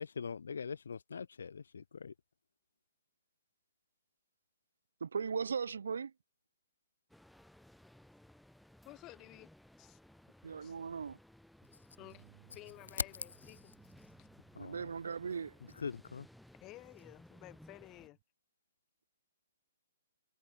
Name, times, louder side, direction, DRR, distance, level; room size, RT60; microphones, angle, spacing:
voice 1, 0.0-2.1 14.5-14.9 15.8-16.3, left 6 dB, 85° left, 0.8 m, -43 dB
voice 2, 5.0-6.1 10.4-11.2 14.6-15.5, right 6 dB, 85° right, 0.9 m, -38 dB
sound 1, 7.1-18.1, left 1 dB, ahead, 4.1 m, -60 dB
voice 3, 8.8-9.5 9.8-10.0 10.6-10.8 12.0-12.2 12.5-13.7 14.2-14.3 16.6-18.2, left 19 dB, 20° left, 2.7 m, -54 dB
Bass guitar, 12.0-18.2, right 17 dB, 30° right, 5.9 m, -67 dB
hypercardioid pair, 165°, 0 cm